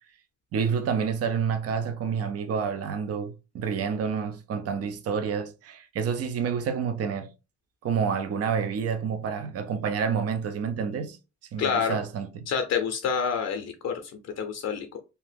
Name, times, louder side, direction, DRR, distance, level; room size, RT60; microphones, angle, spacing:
voice 1, 0.5-7.3 7.8-11.2 11.5-12.5, right 6 dB, 55° right, 0.6 m, -28 dB
voice 2, 11.6-12.0 12.5-15.0, left 6 dB, 55° left, 0.6 m, -28 dB
2.7 x 2.1 x 3.3 m
cardioid pair, 90°, 30 cm